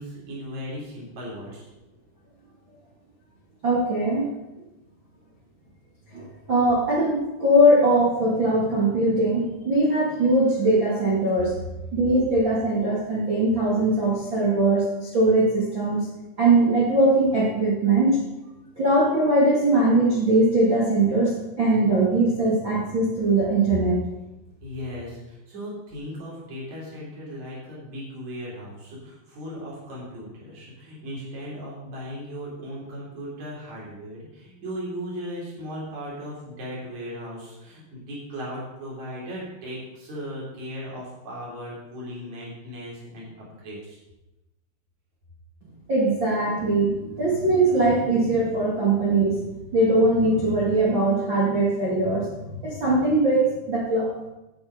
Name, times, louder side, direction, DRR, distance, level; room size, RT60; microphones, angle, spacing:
voice 1, 0.0-1.7 24.6-44.0, equal, 35° right, -5 dB, 4.6 m, -37 dB
voice 2, 3.6-4.3 6.1-11.5 11.9-16.1 16.4-18.2 18.8-23.9 45.9-49.4 49.7-54.3, right 2 dB, 55° right, -7 dB, 1.3 m, -21 dB
10.5 x 8.8 x 5.2 m, 0.98 s
omnidirectional pair, 6.0 m